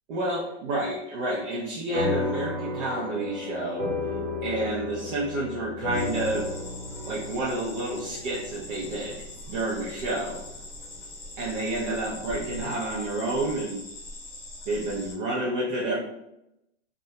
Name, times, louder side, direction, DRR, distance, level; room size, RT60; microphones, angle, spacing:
voice 1, 0.1-3.9 4.4-6.5 7.1-10.4 11.4-13.8 14.7-16.0, right 2 dB, 50° right, -4 dB, 0.5 m, -30 dB
sound 1, 1.9-10.7, left 2 dB, 75° right, 0.8 m, -33 dB
sound 2, 5.9-15.1, left 2 dB, 15° left, 1.0 m, -42 dB
2.2 x 2.1 x 2.7 m, 0.84 s
supercardioid pair, 160°, 34 cm